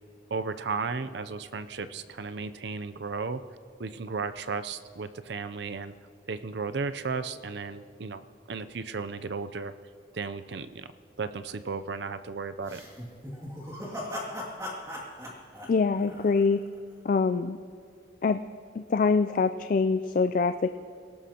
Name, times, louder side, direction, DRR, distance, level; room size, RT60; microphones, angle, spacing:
voice 1, 0.3-3.4 3.8-5.9 6.3-8.2 8.5-9.7 10.1-10.9 11.2-12.8, right 4 dB, 65° right, 11 dB, 0.5 m, -34 dB
sound 1, 12.6-16.8, left 1 dB, 15° right, 2.3 m, -38 dB
voice 2, 15.7-16.6 17.0-17.6 18.2-18.4 18.8-20.7, left 4 dB, 45° left, 10 dB, 0.3 m, -24 dB
28.0 x 18.0 x 2.9 m, 2.4 s
head